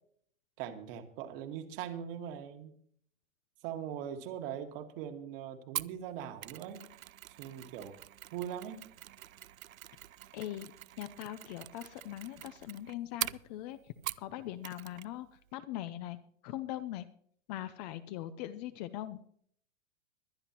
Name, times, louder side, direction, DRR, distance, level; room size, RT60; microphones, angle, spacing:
voice 1, 0.6-2.7 3.6-6.9 7.4-7.9 8.3-8.8, right 9 dB, 45° right, 6 dB, 1.8 m, -41 dB
Mechanisms, 5.8-14.3 14.6-15.1 15.4-15.5, right 13 dB, 85° right, 0.5 m, -44 dB
voice 2, 10.3-10.7 11.0-15.3 15.5-16.2 16.4-17.1 17.5-19.2, left 13 dB, 30° left, 13 dB, 0.6 m, -41 dB
21.5 x 10.5 x 3.0 m, 0.63 s
hypercardioid pair, 125°, 40 cm